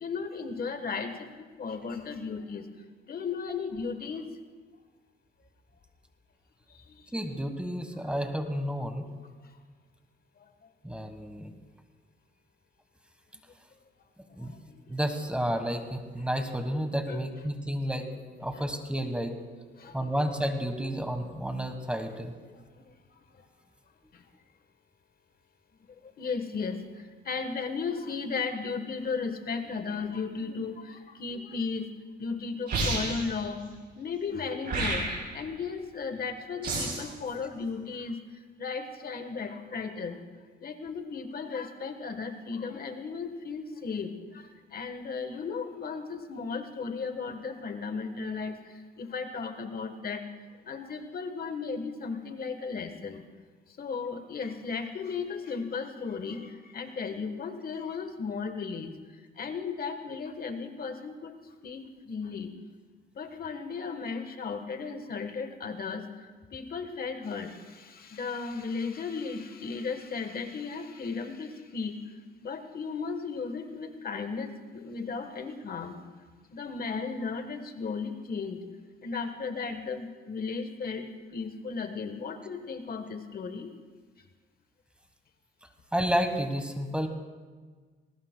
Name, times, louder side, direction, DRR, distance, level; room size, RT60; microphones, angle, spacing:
voice 1, 0.0-2.7 3.1-4.2 6.7-7.0 9.4-9.5 10.4-10.7 14.4-14.8 17.1-17.2 18.5-18.6 19.8-20.1 22.5-23.5 24.1-24.2 26.0-31.9 32.2-33.6 34.0-40.2 40.6-50.2 50.6-53.2 53.8-59.0 59.4-61.4 61.6-62.5 63.2-72.2 72.4-76.0 76.5-78.6 79.0-83.7, left 5 dB, 50° left, 8 dB, 1.2 m, -35 dB
voice 2, 7.1-9.1 10.8-11.5 14.4-14.5 14.9-18.1 18.4-19.4 19.9-22.3 85.9-87.1, equal, 5° right, 6 dB, 1.3 m, -31 dB
sound 1, 32.7-33.4 34.7-35.4 36.6-37.1, right 2 dB, 55° right, 5.2 m, -30 dB
20.0 x 18.0 x 2.2 m, 1.4 s
cardioid pair, 90°, 20 cm